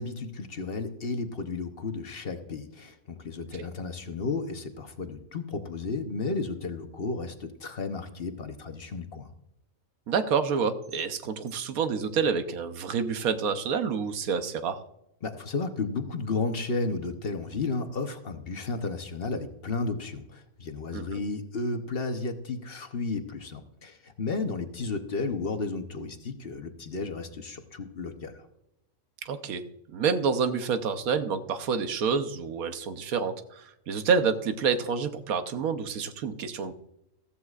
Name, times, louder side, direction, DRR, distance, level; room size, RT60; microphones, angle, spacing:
voice 1, 0.0-9.3 15.2-28.4, left 3 dB, 50° left, 7 dB, 1.0 m, -33 dB
voice 2, 10.1-14.8 20.9-21.2 29.2-29.6 29.9-36.7, right 6 dB, 90° right, 9 dB, 1.3 m, -28 dB
14.0 x 14.0 x 2.4 m, 0.86 s
omnidirectional pair, 1.5 m